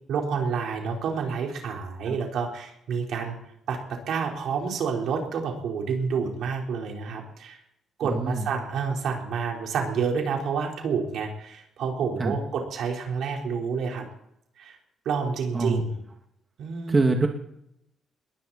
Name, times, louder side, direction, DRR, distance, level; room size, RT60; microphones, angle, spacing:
voice 1, 0.1-3.4 3.7-7.6 8.0-14.0 14.6-14.8 15.0-15.9 16.6-17.0, right 6 dB, 75° right, 1 dB, 4.3 m, -29 dB
voice 2, 8.0-8.5 12.2-12.4 15.5-15.8 16.9-17.3, right 3 dB, 30° right, 3 dB, 2.2 m, -24 dB
21.5 x 16.0 x 4.3 m, 0.78 s
cardioid pair, 90°, 0 cm